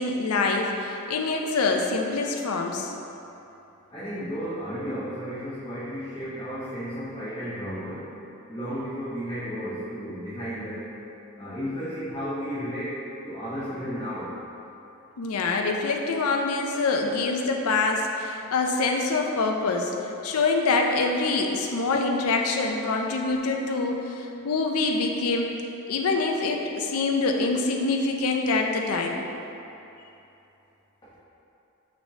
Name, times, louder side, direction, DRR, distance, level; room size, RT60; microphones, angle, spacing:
voice 1, 0.0-2.9 15.2-19.9 20.2-25.6 25.9-29.3, left 3 dB, 85° left, 3 dB, 0.5 m, -25 dB
voice 2, 3.9-8.1 8.5-10.9 11.4-14.4, equal, 20° left, -12 dB, 0.9 m, -33 dB
6.0 x 3.2 x 2.7 m, 2.9 s
head